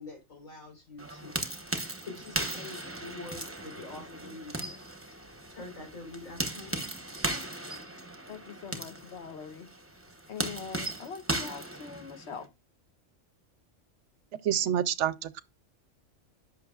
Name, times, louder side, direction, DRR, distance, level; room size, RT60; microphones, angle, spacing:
voice 1, 0.0-1.5 2.0-4.8 5.5-6.8, left 3 dB, 85° left, 4.4 m, -45 dB
sound 1, 1.0-12.4, right 1 dB, 10° right, 0.8 m, -37 dB
voice 2, 8.3-9.7 10.3-12.5, left 6 dB, 60° left, 1.2 m, -42 dB
voice 3, 14.4-15.4, right 10 dB, 70° right, 0.8 m, -28 dB
10.5 x 6.2 x 2.4 m
omnidirectional pair, 1.3 m